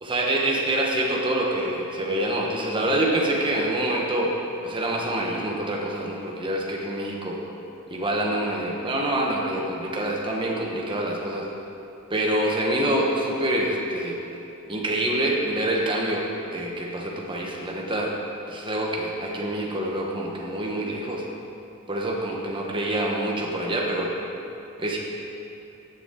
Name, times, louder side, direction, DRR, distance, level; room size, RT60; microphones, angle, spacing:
voice 1, 0.0-4.3 4.6-7.4 7.9-11.5 12.1-14.2 14.7-18.1 18.5-21.2 21.9-24.1 24.8-25.0, right 1 dB, 20° right, -2 dB, 1.2 m, -26 dB
15.0 x 6.9 x 3.8 m, 2.9 s
head